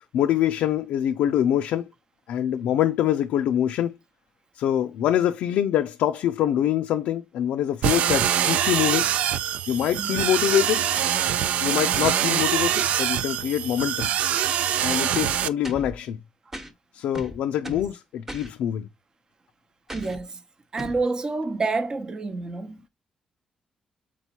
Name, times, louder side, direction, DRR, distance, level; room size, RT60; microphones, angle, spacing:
voice 1, 0.1-1.9 2.3-3.9 4.5-9.1 9.7-10.9 11.6-14.1 14.8-16.2 16.9-18.9, left 11 dB, 90° left, 0.4 m, -24 dB
sound 1, 7.8-15.5, right 10 dB, 80° right, 0.3 m, -24 dB
sound 2, 15.1-16.0 16.5-16.7 17.1-17.9 18.3-18.5 19.9-20.2 20.8-21.0, equal, 20° right, 1.0 m, -37 dB
voice 2, 19.9-20.4 20.7-22.7, right 3 dB, 35° right, 0.7 m, -28 dB
4.5 x 4.1 x 2.8 m
cardioid pair, 85°, 2 cm